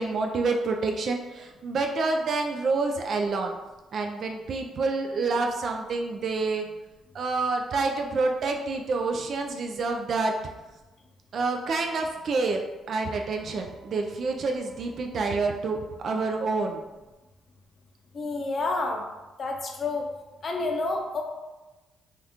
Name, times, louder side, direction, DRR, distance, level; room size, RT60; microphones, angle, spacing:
voice 1, 0.0-3.5 3.9-6.7 7.1-10.3 11.3-12.6 12.9-16.9, right 3 dB, 55° right, 3 dB, 0.3 m, -28 dB
voice 2, 18.1-19.0 19.4-20.0 20.4-21.2, left 3 dB, 45° left, 1 dB, 0.6 m, -29 dB
2.8 x 2.4 x 3.4 m, 1.1 s
cardioid pair, 90°, 0 cm